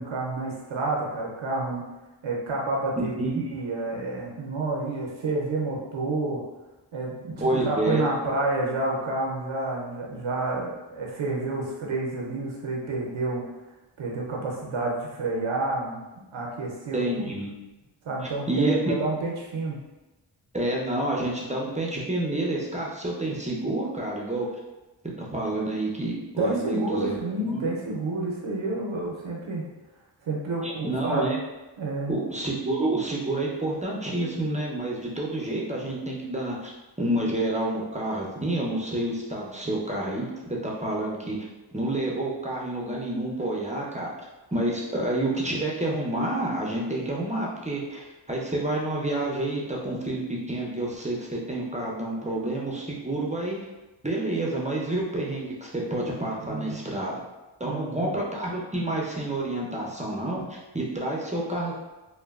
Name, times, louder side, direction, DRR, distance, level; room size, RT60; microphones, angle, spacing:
voice 1, 0.0-1.8 2.2-6.4 6.9-13.4 14.0-17.2 18.0-19.8 26.4-29.6 30.3-31.3 31.8-32.1 56.4-56.8 57.6-58.1, right 2 dB, 70° right, -3 dB, 0.6 m, -29 dB
voice 2, 3.0-3.4 7.4-8.0 16.9-17.5 18.5-18.9 20.5-24.5 25.2-27.6 30.6-31.4 32.1-36.7 37.0-41.4 41.7-44.1 44.5-53.6 54.0-57.2 57.6-61.8, right 1 dB, 15° right, -3 dB, 0.5 m, -29 dB
3.0 x 2.2 x 2.3 m, 1.1 s
cardioid pair, 45°, 49 cm